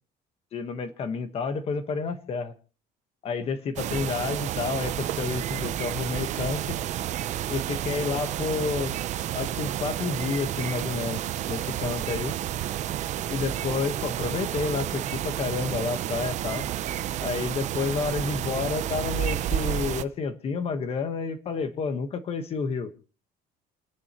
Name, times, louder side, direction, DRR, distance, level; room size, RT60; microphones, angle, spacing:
voice 1, 0.5-2.5 3.2-6.8 7.5-9.0 9.3-11.2 11.5-12.4 13.3-16.6 17.2-22.9, left 5 dB, 35° left, 10 dB, 1.3 m, -30 dB
sound 1, 3.8-20.0, right 11 dB, 45° right, 0.6 m, -30 dB
29.5 x 10.5 x 3.0 m, 0.37 s
cardioid pair, 175°, 17 cm